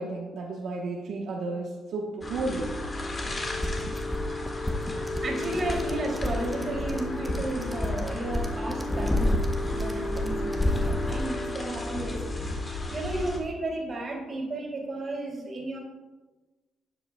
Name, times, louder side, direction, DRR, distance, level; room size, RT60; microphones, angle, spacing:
voice 1, 0.0-2.7, right 3 dB, 70° right, -2 dB, 1.0 m, -33 dB
sound 1, 2.2-13.4, left 2 dB, 30° left, 1.7 m, -33 dB
sound 2, 3.6-11.3, left 1 dB, 10° left, 0.8 m, -30 dB
Tools, 5.0-10.9, right 1 dB, 15° right, 1.1 m, -50 dB
voice 2, 5.2-9.4 9.7-15.8, right 2 dB, 40° right, 0 dB, 2.7 m, -33 dB
12.0 x 7.8 x 2.2 m, 1.2 s
cardioid pair, 90°, 0 cm